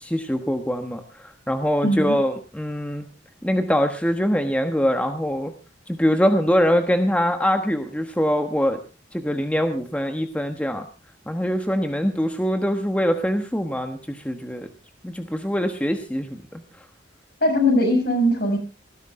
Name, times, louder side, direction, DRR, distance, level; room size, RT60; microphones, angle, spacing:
voice 1, 0.0-3.1 3.4-5.5 5.9-8.8 9.1-10.9 11.3-14.7 15.0-16.6, equal, 5° left, 6 dB, 1.2 m, -23 dB
voice 2, 1.8-2.2 17.4-18.6, left 1 dB, 60° left, 4 dB, 6.3 m, -20 dB
18.5 x 15.5 x 3.7 m, 0.33 s
head